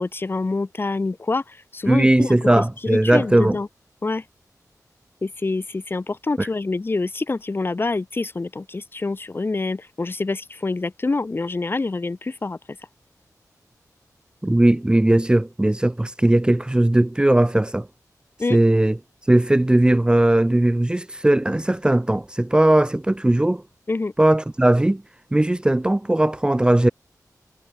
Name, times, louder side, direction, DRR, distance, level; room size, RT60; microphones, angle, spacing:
voice 1, 0.0-2.6 2.9-3.7 4.0-4.2 5.2-12.6 18.4-18.6 23.9-24.1, left 3 dB, 35° left, 1.1 m, -26 dB
voice 2, 1.9-3.6 6.4-6.5 14.4-17.9 18.5-19.0 19.3-23.6 24.2-25.0 25.3-26.9, right 1 dB, 15° right, 0.7 m, -18 dB
wide cardioid pair, 105°, 7 cm